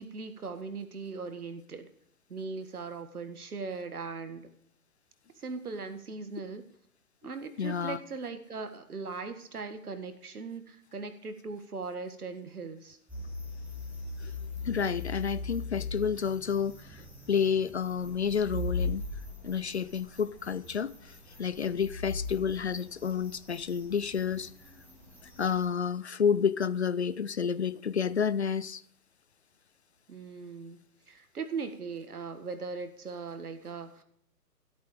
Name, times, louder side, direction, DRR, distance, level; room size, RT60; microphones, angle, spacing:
voice 1, 0.0-1.9 2.3-4.5 5.4-6.6 7.2-13.0 30.1-34.0, right 4 dB, 65° right, 9 dB, 1.8 m, -39 dB
voice 2, 7.6-8.0 14.2-14.3 14.6-19.0 19.4-24.5 25.4-28.8, left 7 dB, 45° left, 16 dB, 0.5 m, -30 dB
sound 1, 13.1-25.6, left 3 dB, 5° right, 1.9 m, -40 dB
14.5 x 8.6 x 5.1 m, 0.68 s
figure-of-eight pair, 130°, 48 cm